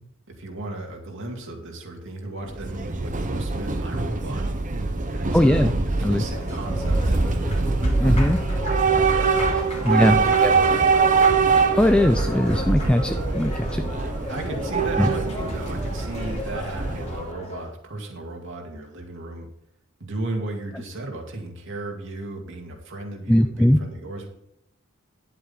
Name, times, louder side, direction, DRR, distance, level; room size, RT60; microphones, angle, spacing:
voice 1, 0.3-4.6 5.1-5.7 6.0-7.2 9.8-10.9 14.3-19.5 20.0-24.3, right 2 dB, 60° right, 1 dB, 2.4 m, -34 dB
Train / Subway metro underground, 2.5-17.3, right 4 dB, 40° right, 1.0 m, -23 dB
voice 2, 5.3-5.7 6.0-6.2 8.0-8.4 9.5-10.2 10.4-10.5 11.7-13.9 15.0-15.1 23.3-23.8, left 1 dB, 5° left, 8 dB, 0.4 m, -20 dB
Applause, 5.9-17.7, left 1 dB, 30° left, 2.8 m, -35 dB
11.0 x 7.8 x 4.1 m, 0.78 s
head